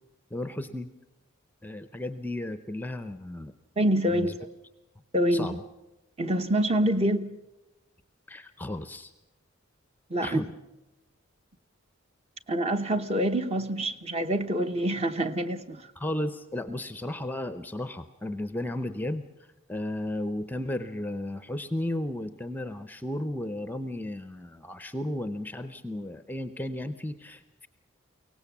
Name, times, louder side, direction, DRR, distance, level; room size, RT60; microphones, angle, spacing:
voice 1, 0.3-0.9 1.6-3.5 4.1-4.3 5.3-5.6 8.3-9.1 10.2-10.5 16.0-19.3 19.7-27.7, left 1 dB, 10° left, 0.6 m, -34 dB
voice 2, 3.8-4.3 5.1-5.6 6.2-7.3 10.1-10.4 12.5-15.8, right 1 dB, 30° right, 1.0 m, -26 dB
23.5 x 18.0 x 7.2 m
head